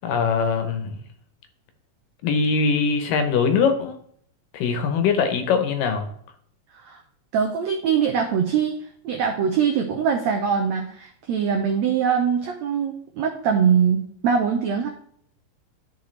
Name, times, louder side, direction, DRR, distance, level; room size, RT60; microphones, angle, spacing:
voice 1, 0.0-1.0 2.2-4.0 4.5-6.1, left 5 dB, 75° left, 7 dB, 2.4 m, -22 dB
voice 2, 7.3-14.9, right 7 dB, 80° right, 3 dB, 1.5 m, -22 dB
12.0 x 5.5 x 3.2 m, 0.64 s
omnidirectional pair, 4.2 m